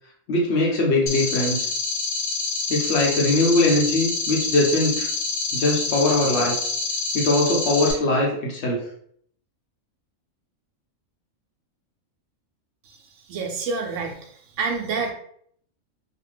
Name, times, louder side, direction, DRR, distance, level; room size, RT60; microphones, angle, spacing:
voice 1, 0.3-1.7 2.7-5.1 5.5-6.7 7.1-8.8, left 2 dB, 60° left, -2 dB, 0.9 m, -21 dB
sound 1, 1.1-7.9, left 3 dB, 90° left, 1.1 m, -27 dB
voice 2, 13.3-14.2 14.6-15.1, right 4 dB, 70° right, 1 dB, 0.9 m, -27 dB
2.7 x 2.2 x 3.3 m, 0.64 s
omnidirectional pair, 1.4 m